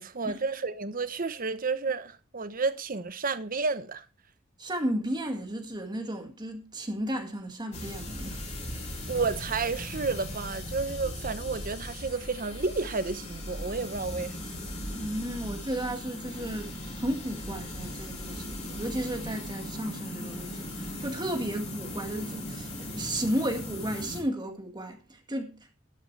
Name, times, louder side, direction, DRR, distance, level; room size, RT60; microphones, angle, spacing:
voice 1, 0.0-4.0 9.1-14.3, right 4 dB, 45° right, 1.0 m, -31 dB
voice 2, 4.6-8.4 14.9-25.5, right 1 dB, 20° right, 1.9 m, -33 dB
sound 1, 7.7-24.2, left 1 dB, 35° left, 4.2 m, -38 dB
12.0 x 12.0 x 3.3 m
head